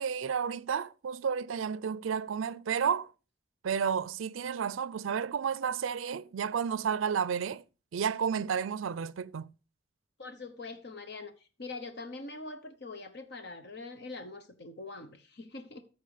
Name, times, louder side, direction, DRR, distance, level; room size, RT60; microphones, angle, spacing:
voice 1, 0.0-3.1 3.6-7.6 7.9-9.5, right 7 dB, 85° right, 0.4 m, -31 dB
voice 2, 10.2-11.3 11.6-15.8, left 3 dB, 55° left, 1.0 m, -43 dB
14.0 x 4.6 x 5.0 m
head